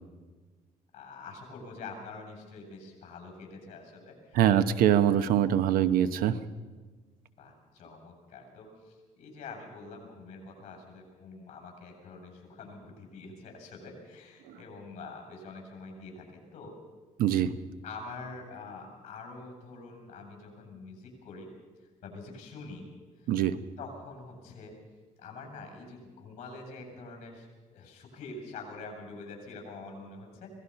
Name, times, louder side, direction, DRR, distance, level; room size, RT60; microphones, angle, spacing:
voice 1, 0.9-4.4 7.4-16.7 17.8-21.5 21.8-22.9 23.2-23.3 23.8-24.7 25.2-27.5 27.7-30.5, left 3 dB, 50° left, 2 dB, 7.6 m, -45 dB
voice 2, 4.3-6.4 14.5-14.6 17.2-17.5 23.3-23.6, right 10 dB, 80° right, 12 dB, 1.0 m, -23 dB
25.0 x 18.5 x 5.8 m, 1.3 s
cardioid pair, 170°, 15 cm